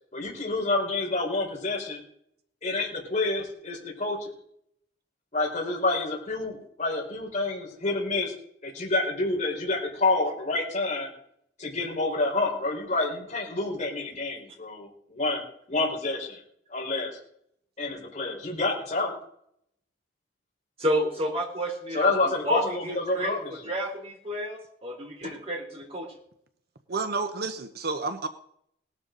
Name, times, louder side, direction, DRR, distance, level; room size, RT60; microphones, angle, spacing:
voice 1, 0.1-2.0 2.6-4.3 5.3-8.3 8.6-11.1 11.6-15.4 15.7-16.4 16.7-17.1 17.8-19.2 21.9-23.7 25.2-25.3, left 2 dB, 40° left, -3 dB, 4.6 m, -28 dB
voice 2, 20.8-22.1 22.4-26.1, equal, 35° right, 1 dB, 3.7 m, -30 dB
voice 3, 26.9-28.3, right 3 dB, 55° right, 9 dB, 0.9 m, -30 dB
19.0 x 12.5 x 3.9 m, 0.69 s
head